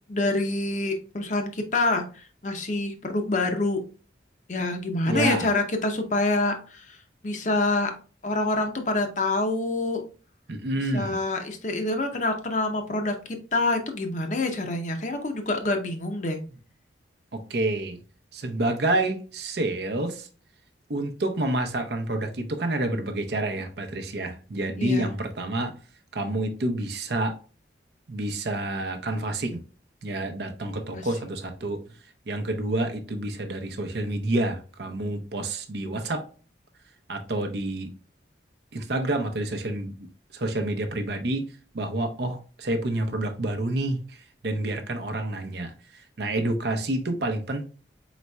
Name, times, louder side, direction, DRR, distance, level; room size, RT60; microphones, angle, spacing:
voice 1, 0.1-3.8 4.5-7.0 7.2-7.9 8.2-10.0 10.9-13.2 13.5-16.4 24.8-25.1 30.9-31.0, left 2 dB, 40° left, 0.6 m, -26 dB
voice 2, 5.1-5.5 10.5-11.2 17.3-18.0 18.3-20.3 20.9-25.7 26.1-27.4 28.1-29.6 30.0-31.8 32.3-36.3 37.1-37.9 38.7-39.9 40.3-47.7, right 1 dB, 60° right, 0.6 m, -28 dB
4.2 x 4.1 x 2.3 m
head